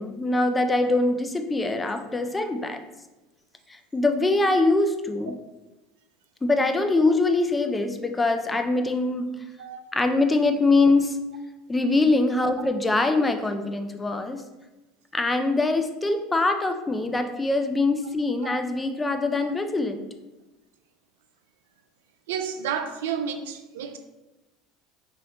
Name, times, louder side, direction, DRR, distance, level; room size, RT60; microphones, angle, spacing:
voice 1, 0.0-2.8 3.7-5.4 6.4-9.4 9.9-11.2 11.7-14.4 15.1-20.0, left 2 dB, 15° left, 0.4 m, -23 dB
voice 2, 22.3-24.0, right 7 dB, 85° right, 0.4 m, -31 dB
4.1 x 3.1 x 2.8 m
supercardioid pair, 100°, 0 cm